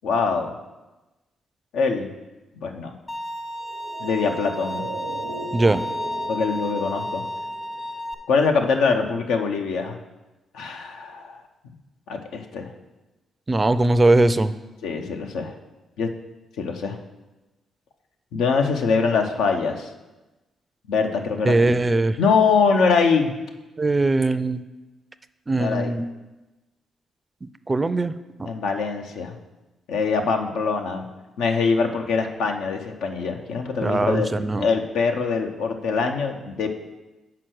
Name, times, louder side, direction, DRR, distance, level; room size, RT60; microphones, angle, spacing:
voice 1, 0.0-0.5 1.7-2.1 2.6-2.9 4.0-4.9 6.3-7.2 8.3-10.0 10.5-11.4 12.1-12.7 14.8-15.5 16.0-16.1 16.6-17.0 18.3-19.9 20.9-21.7 22.2-23.3 25.5-25.9 28.4-29.4 29.9-31.1 31.4-34.3 34.6-36.7, left 5 dB, 80° left, 4 dB, 0.7 m, -23 dB
Bowed string instrument, 3.1-8.1, left 1 dB, 30° left, 0.7 m, -32 dB
sound 1, 3.6-8.2 8.4-8.5, right 4 dB, 90° right, 0.8 m, -38 dB
voice 2, 5.5-5.8 13.5-14.5 21.4-22.2 23.8-24.6 25.5-26.1 27.4-28.1 28.4-28.5 33.8-34.7, right 2 dB, 25° right, 13 dB, 0.4 m, -20 dB
5.9 x 4.5 x 6.4 m, 1.1 s
supercardioid pair, 55°, 0 cm